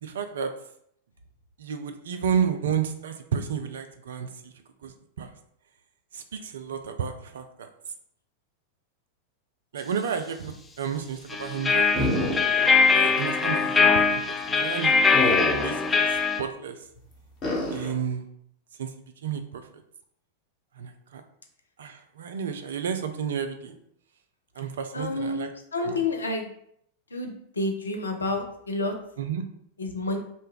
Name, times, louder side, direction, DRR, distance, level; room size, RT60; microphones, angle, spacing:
voice 1, 0.0-0.5 1.6-4.5 4.8-5.3 6.1-7.7 9.7-12.3 12.9-15.3 15.6-16.9 17.7-18.3 18.8-18.9 19.2-19.7 20.8-21.2 21.8-23.8 24.6-25.5 25.8-26.0 29.2-29.4, right 7 dB, 60° right, 7 dB, 0.3 m, -32 dB
sound 1, 11.3-16.4, left 4 dB, 15° left, 0.3 m, -22 dB
sound 2, 12.0-12.8 13.1-13.2 15.1-15.9 17.4-17.9, left 1 dB, 35° left, 0.9 m, -27 dB
voice 2, 24.9-26.5 27.1-28.9 29.8-30.2, left 2 dB, 75° left, 4 dB, 0.5 m, -29 dB
2.6 x 2.1 x 3.6 m, 0.71 s
figure-of-eight pair, 90°, 0 cm